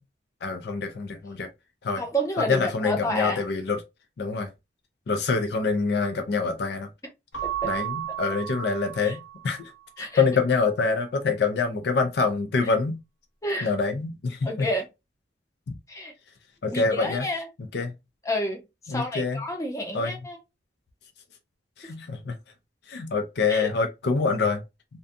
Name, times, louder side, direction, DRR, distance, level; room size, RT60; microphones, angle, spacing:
voice 1, 0.4-1.5 1.8-2.0 2.5-3.8 4.2-4.5 5.1-6.9 7.6-9.7 10.0-13.0 13.6-14.7 15.7-15.8 16.6-17.3 17.7-17.9 18.9-19.4 19.9-20.1 21.8-22.4 22.9-24.6, left 4 dB, 60° left, 0.4 m, -26 dB
voice 2, 2.0-3.4 7.4-7.7 9.0-9.1 10.0-10.2 13.4-13.7 14.4-14.8 15.9-16.1 16.6-17.5 18.2-20.4 23.5-23.7, equal, 15° left, 0.6 m, -30 dB
Keyboard (musical) / Bell, 7.3-9.8, right 12 dB, 85° left, 0.9 m, -34 dB
2.6 x 2.2 x 2.5 m
head